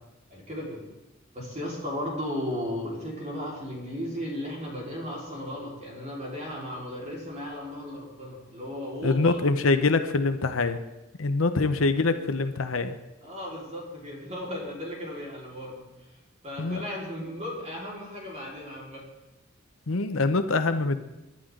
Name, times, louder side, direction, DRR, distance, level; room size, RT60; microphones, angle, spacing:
voice 1, 0.3-0.8 1.3-9.4 13.2-15.8 16.4-19.1, left 1 dB, 35° right, -3 dB, 4.4 m, -35 dB
voice 2, 9.0-10.8 11.2-13.0 16.6-16.8 19.9-21.0, left 3 dB, 85° left, 9 dB, 0.9 m, -24 dB
24.5 x 11.5 x 3.9 m, 1.0 s
head